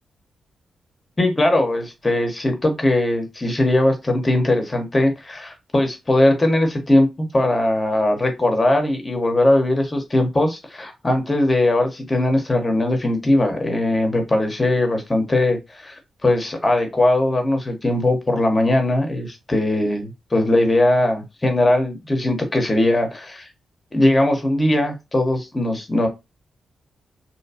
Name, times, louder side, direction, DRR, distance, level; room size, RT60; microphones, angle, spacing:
voice 1, 1.2-23.5 23.9-26.1, left 1 dB, 30° left, 4 dB, 1.0 m, -20 dB
2.8 x 2.3 x 2.7 m, 0.23 s
supercardioid pair, 45°, 0 cm